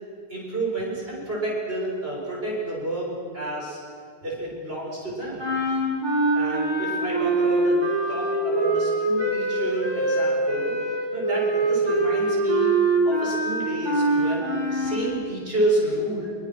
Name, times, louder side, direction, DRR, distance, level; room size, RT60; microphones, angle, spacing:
voice 1, 0.3-3.8 4.2-5.4 6.3-7.8 8.1-10.8 11.1-12.7 13.0-16.3, right 1 dB, 75° right, -4 dB, 7.6 m, -29 dB
sound 1, 5.4-15.0, right 2 dB, 25° right, 5.2 m, -23 dB
27.0 x 24.5 x 6.3 m, 2.1 s
omnidirectional pair, 1.0 m